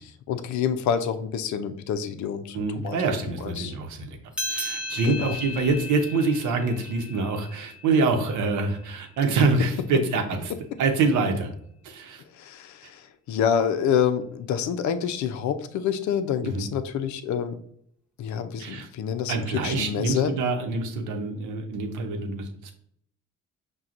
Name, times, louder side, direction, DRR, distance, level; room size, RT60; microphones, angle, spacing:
voice 1, 0.0-3.7 5.0-5.4 12.3-17.6 18.2-20.3, left 8 dB, 70° left, 9 dB, 0.5 m, -27 dB
voice 2, 2.5-4.2 4.5-10.5 10.8-11.5 11.8-12.2 16.4-16.7 18.6-18.9 19.3-22.7, right 3 dB, 80° right, 4 dB, 0.8 m, -25 dB
sound 1, 4.3-9.2, left 2 dB, 5° right, 0.7 m, -36 dB
5.7 x 2.2 x 2.5 m, 0.68 s
cardioid pair, 90°, 30 cm